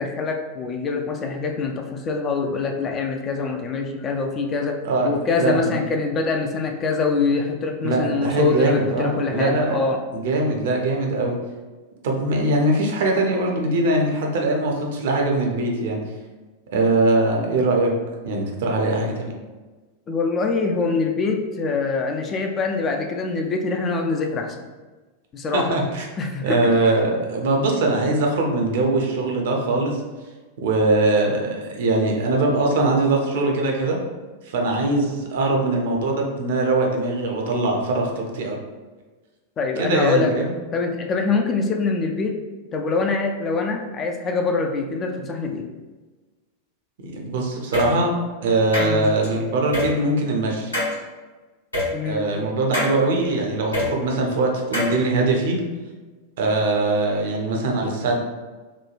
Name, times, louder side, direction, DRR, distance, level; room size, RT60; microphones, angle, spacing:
voice 1, 0.0-10.0 20.1-24.7 25.3-25.8 26.2-26.7 39.6-40.4 40.7-42.4 42.7-45.7 48.8-49.2 51.9-52.3, left 4 dB, 25° left, 3 dB, 0.3 m, -24 dB
voice 2, 5.4-5.8 7.8-9.8 10.1-11.4 12.0-16.0 16.7-17.9 18.2-19.3 25.5-26.1 26.4-30.0 30.6-34.0 34.5-38.6 39.8-40.5 47.0-48.1 48.4-50.7 52.0-55.6 56.4-58.2, right 2 dB, 55° right, 1 dB, 0.5 m, -21 dB
sound 1, 47.7-47.9 48.7-49.3 49.7-49.9 50.7-50.9 51.7-51.9 52.7-52.9 53.7-53.9 54.7-54.9, left 2 dB, 80° left, 1.1 m, -23 dB
3.0 x 2.2 x 2.4 m, 1.3 s
figure-of-eight pair, 90°, 0 cm